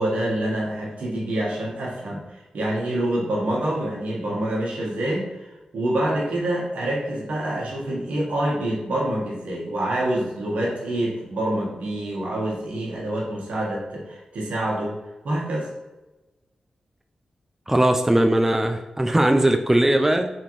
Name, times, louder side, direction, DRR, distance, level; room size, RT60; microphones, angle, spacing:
voice 1, 0.0-15.0 15.2-15.7, right 1 dB, 80° right, -3 dB, 1.3 m, -26 dB
voice 2, 17.7-20.3, right 1 dB, 15° right, 6 dB, 0.4 m, -19 dB
3.6 x 3.6 x 3.0 m, 1.1 s
cardioid pair, 40°, 2 cm